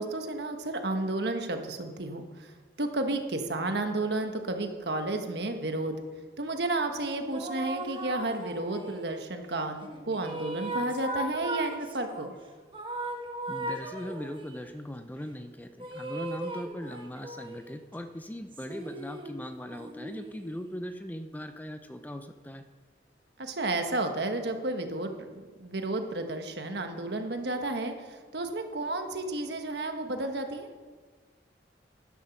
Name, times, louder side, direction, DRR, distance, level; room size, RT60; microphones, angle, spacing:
voice 1, 0.0-2.5 2.8-6.0 6.4-12.4 23.4-30.7, right 2 dB, 65° right, 5 dB, 1.3 m, -32 dB
sound 1, 7.0-9.2 9.8-12.3 12.7-14.6 15.8-17.7 18.5-20.8, right 1 dB, 30° right, 1.2 m, -38 dB
voice 2, 13.5-22.6, equal, 10° left, 8 dB, 0.5 m, -39 dB
12.0 x 10.0 x 5.9 m, 1.5 s
head